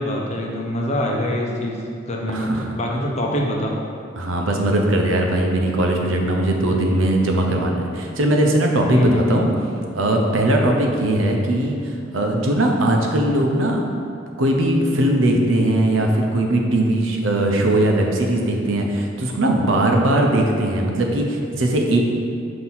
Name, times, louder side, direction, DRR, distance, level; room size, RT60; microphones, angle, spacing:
voice 1, 0.0-3.7 8.9-9.5, left 1 dB, 35° left, -1 dB, 0.7 m, -24 dB
voice 2, 2.3-2.7 4.2-9.5 9.9-13.9 14.4-22.0, right 1 dB, 85° right, 1 dB, 0.7 m, -19 dB
6.0 x 2.9 x 5.6 m, 2.4 s
head